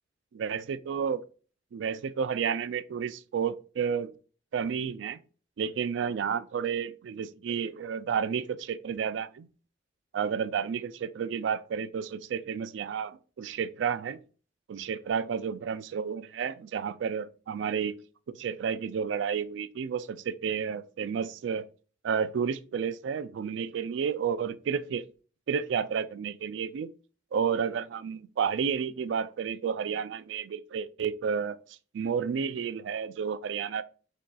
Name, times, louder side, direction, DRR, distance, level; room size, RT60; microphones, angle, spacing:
voice 1, 0.3-1.2 1.7-4.1 4.5-5.2 5.6-9.5 10.1-14.2 14.7-17.9 18.3-21.7 22.0-25.0 25.5-26.9 27.3-33.8, right 7 dB, 85° right, 0.3 m, -31 dB
6.2 x 2.7 x 2.3 m
head